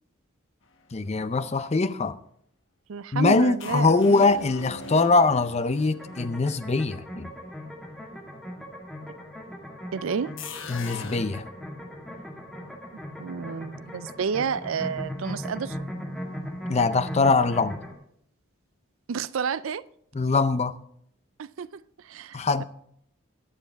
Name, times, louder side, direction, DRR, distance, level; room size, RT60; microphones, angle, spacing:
voice 1, 0.9-2.2 3.1-7.3 10.7-11.5 16.7-17.8 20.1-20.7 22.3-22.6, left 3 dB, 30° left, 0.5 m, -22 dB
voice 2, 2.9-4.5 9.9-10.4 13.2-15.8 19.1-19.8 21.4-22.6, right 6 dB, 70° right, 0.4 m, -31 dB
sound 1, 3.6-7.4 10.4-11.2, left 4 dB, 60° left, 1.2 m, -41 dB
sound 2, 5.9-17.9, equal, ahead, 2.0 m, -38 dB
22.5 x 7.5 x 3.5 m
head